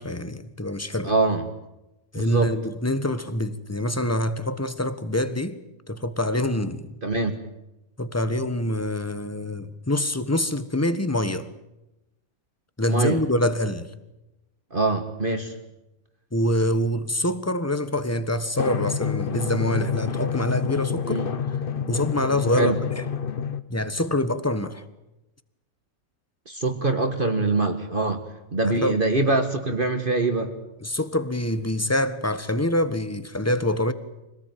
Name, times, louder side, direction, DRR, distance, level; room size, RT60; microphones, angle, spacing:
voice 1, 0.0-1.1 2.1-5.6 5.9-6.9 8.0-11.5 12.8-13.9 16.3-21.2 21.9-23.0 23.7-24.8 28.8-29.0 30.8-33.9, left 1 dB, 10° left, 1.3 m, -25 dB
voice 2, 1.0-1.5 2.2-2.5 7.0-7.4 12.9-13.2 14.7-15.5 21.0-21.3 22.5-22.8 26.5-28.2 28.5-30.5, right 3 dB, 40° right, 1.8 m, -24 dB
Drum, 18.6-23.6, left 6 dB, 45° left, 1.1 m, -28 dB
25.5 x 18.5 x 9.3 m
omnidirectional pair, 1.5 m